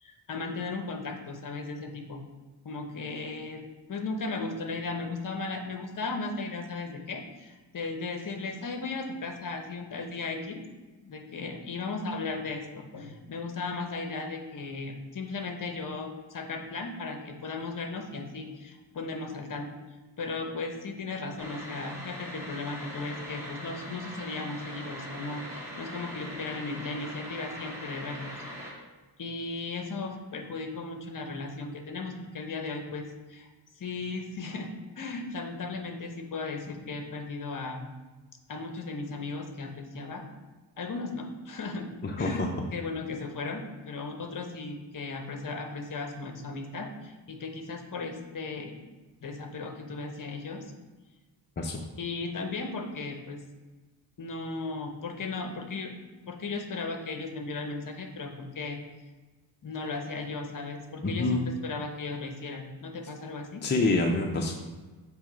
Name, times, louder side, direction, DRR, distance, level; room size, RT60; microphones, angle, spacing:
voice 1, 0.0-2.2 2.6-3.6 3.9-10.6 11.0-19.7 20.2-28.3 29.2-33.5 33.8-34.7 35.0-37.9 38.5-40.2 40.8-41.9 42.2-42.4 42.7-48.9 49.2-50.7 52.0-53.4 54.2-55.9 56.3-58.8 59.6-63.7, left 3 dB, 45° left, 4 dB, 0.9 m, -36 dB
sound 1, 21.4-28.7, equal, 5° right, 2.0 m, -41 dB
voice 2, 42.0-42.5 51.6-51.8 61.0-61.5 63.6-64.5, left 2 dB, 25° left, 1 dB, 0.6 m, -26 dB
7.2 x 3.1 x 5.0 m, 1.2 s
cardioid pair, 105°, 46 cm